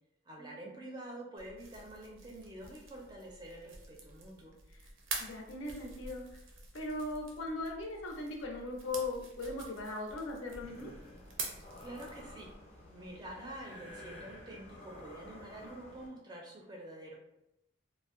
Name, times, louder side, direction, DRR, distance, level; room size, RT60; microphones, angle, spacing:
voice 1, 0.3-4.5 11.8-12.5 12.9-17.1, right 1 dB, 20° right, -1 dB, 0.4 m, -47 dB
sound 1, 1.4-12.5, right 4 dB, 80° right, 0.5 m, -47 dB
voice 2, 5.2-6.2 6.7-10.9, left 2 dB, 85° left, 1 dB, 0.5 m, -39 dB
sound 2, 10.6-16.1, left 1 dB, 30° left, 0.5 m, -52 dB
2.6 x 2.1 x 2.4 m, 0.85 s
head